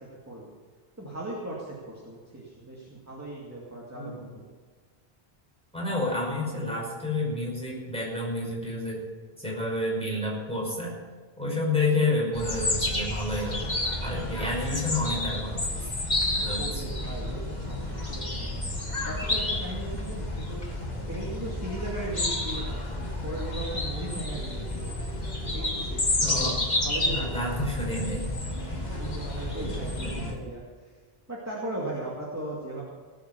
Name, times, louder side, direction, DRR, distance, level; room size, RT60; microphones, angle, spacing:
voice 1, 1.0-4.5 16.4-18.8 19.0-20.7 21.1-24.9 25.5-27.6 28.6-30.9 31.3-32.8, right 2 dB, 15° right, -5 dB, 2.4 m, -38 dB
voice 2, 3.9-4.3 5.7-9.0 9.4-11.0 11.4-15.6 16.3-16.8 26.2-26.6 27.0-28.3 30.0-30.1, left 2 dB, 5° left, -4 dB, 5.5 m, -30 dB
sound 1, 12.3-30.3, left 1 dB, 45° left, 2.1 m, -30 dB
18.0 x 8.1 x 6.9 m, 1.5 s
omnidirectional pair, 1.0 m